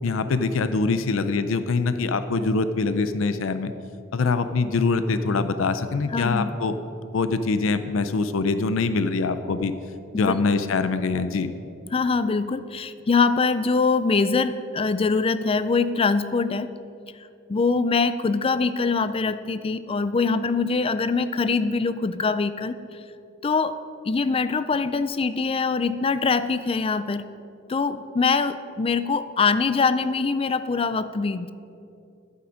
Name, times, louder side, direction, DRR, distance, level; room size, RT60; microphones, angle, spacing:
voice 1, 0.0-3.7 4.1-6.8 7.1-9.7 10.2-11.5, left 4 dB, 85° left, 11 dB, 0.5 m, -24 dB
voice 2, 6.1-6.5 10.1-10.4 11.9-16.7 17.5-22.8 23.4-23.8 24.0-27.2 27.7-31.5, left 4 dB, 30° left, 13 dB, 0.4 m, -23 dB
11.5 x 8.6 x 5.1 m, 2.6 s
head